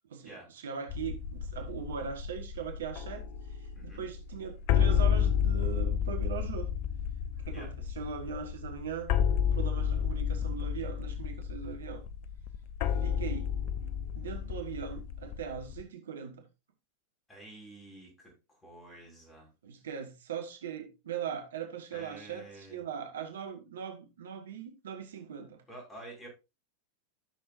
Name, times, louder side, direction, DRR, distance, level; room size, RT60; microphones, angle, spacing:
voice 1, 0.1-6.7 7.5-9.1 9.5-12.0 13.0-13.5 14.1-16.4 19.6-25.6, right 7 dB, 65° right, 1.4 m, -40 dB
sound 1, 0.9-15.8, left 8 dB, 45° left, 0.7 m, -31 dB
voice 2, 3.7-4.1 7.5-7.7 17.3-19.5 21.9-22.8 25.7-26.3, right 2 dB, 15° left, 5.8 m, -49 dB
13.5 x 6.8 x 2.6 m
figure-of-eight pair, 90°, 0 cm